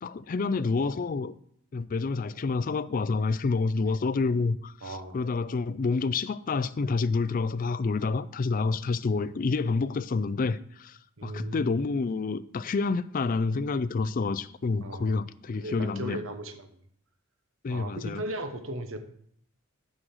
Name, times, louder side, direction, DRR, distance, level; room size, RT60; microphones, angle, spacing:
voice 1, 0.0-1.3 1.7-16.2 17.6-18.2, left 4 dB, 40° left, 0.3 m, -28 dB
voice 2, 4.8-5.2 11.2-11.7 14.8-16.7 17.7-19.0, right 1 dB, 60° right, 1.0 m, -37 dB
6.4 x 6.2 x 7.5 m
head